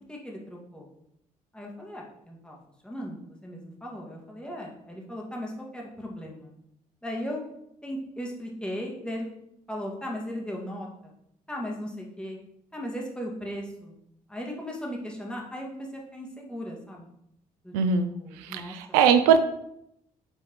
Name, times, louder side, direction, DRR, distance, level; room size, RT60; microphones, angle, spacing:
voice 1, 0.1-0.9 1.5-2.6 2.8-6.5 7.0-7.5 7.8-9.3 9.7-11.1 11.5-12.4 12.7-13.9 14.3-17.1 17.6-17.7 18.1-19.0, equal, 5° left, -2 dB, 1.9 m, -37 dB
voice 2, 17.7-19.4, right 6 dB, 80° right, 10 dB, 0.4 m, -22 dB
7.6 x 4.4 x 3.0 m, 0.78 s
hypercardioid pair, 50°, 18 cm